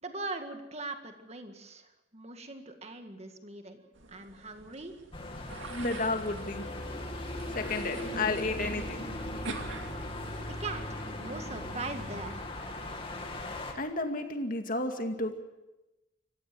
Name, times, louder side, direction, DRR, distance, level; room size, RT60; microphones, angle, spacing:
voice 1, 0.0-3.8 4.1-4.9 10.5-12.4, right 3 dB, 35° right, 6 dB, 1.9 m, -41 dB
sound 1, 3.9-10.6, right 3 dB, 85° right, 2.4 m, -46 dB
sound 2, 5.1-13.7, left 1 dB, 30° left, 2.6 m, -38 dB
voice 2, 5.7-6.7 7.5-9.0 13.7-15.4, left 2 dB, 45° left, 5 dB, 2.3 m, -32 dB
25.5 x 15.5 x 7.7 m, 1.0 s
head